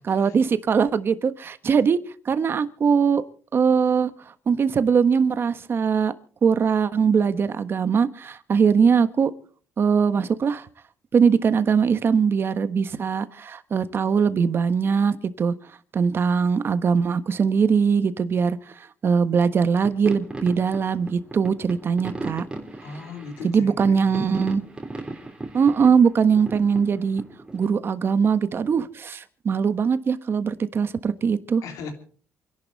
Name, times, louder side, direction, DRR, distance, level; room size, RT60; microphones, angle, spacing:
voice 1, 0.1-2.0 2.2-3.2 3.5-4.1 4.5-6.1 6.4-9.3 9.8-10.6 11.1-15.5 15.9-18.6 19.0-22.4 23.4-24.6 25.5-27.2 27.5-31.6, right 6 dB, 40° right, 12 dB, 1.3 m, -21 dB
sound 1, 19.8-27.7, right 2 dB, 15° right, 3.3 m, -37 dB
voice 2, 22.8-24.4 31.6-31.9, left 5 dB, 80° left, 5 dB, 3.3 m, -38 dB
28.0 x 11.0 x 4.1 m, 0.43 s
cardioid pair, 100°, 6 cm